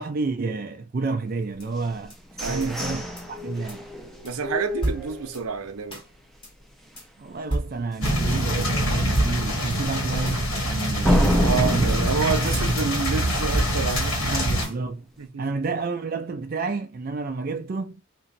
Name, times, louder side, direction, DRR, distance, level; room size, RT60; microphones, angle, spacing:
voice 1, 0.0-2.1 2.5-3.8 7.2-12.0 12.4-12.6 14.2-15.1 15.4-18.0, right 3 dB, 40° right, 0.4 m, -30 dB
sound 1, 1.6-1.7 2.1-2.2 2.6-2.7 3.2-3.3 3.7-3.8 4.2-4.3 4.8-5.4 5.9-6.0 6.4-6.5 7.0-7.1 7.5-8.2 8.6-8.7 9.1-9.8 10.2-10.4 10.8-10.9 11.3-11.4 11.9-12.6 13.0-13.1 13.5-14.2 14.6-14.8, right 1 dB, 25° left, 1.3 m, -31 dB
sound 2, 1.8-5.6 6.1-6.2 6.6-7.0 7.4-7.5 7.9-8.0 11.0-13.7, equal, ahead, 0.6 m, -28 dB
voice 2, 2.4-2.7 4.2-6.0 11.3-14.4 15.2-15.6, right 5 dB, 80° right, 0.7 m, -29 dB
sound 3, 8.0-14.6, equal, 75° left, 1.8 m, -25 dB
3.1 x 2.6 x 4.0 m
head